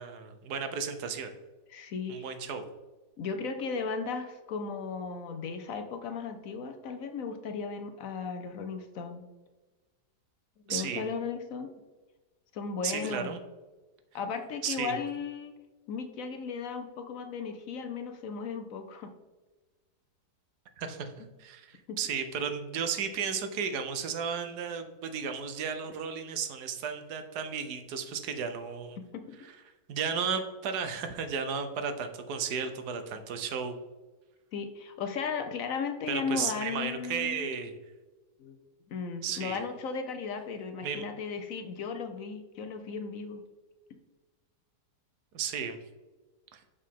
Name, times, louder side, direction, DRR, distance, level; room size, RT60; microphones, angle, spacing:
voice 1, 0.0-1.3 2.1-2.6 10.7-11.0 12.8-13.4 14.6-15.0 20.8-29.0 29.4-29.5 29.9-33.8 36.1-37.8 39.2-39.6 40.8-41.0 45.3-45.8 46.5-46.6, right 6 dB, 70° right, 8 dB, 1.3 m, -34 dB
voice 2, 1.7-2.3 3.2-9.3 10.7-11.7 12.5-13.3 14.1-15.5 15.9-19.1 21.2-21.3 21.9-22.0 29.0-29.4 34.5-37.5 38.4-38.6 38.9-43.4, left 5 dB, 65° left, 7 dB, 0.9 m, -36 dB
6.7 x 5.1 x 3.6 m, 1.2 s
omnidirectional pair, 1.8 m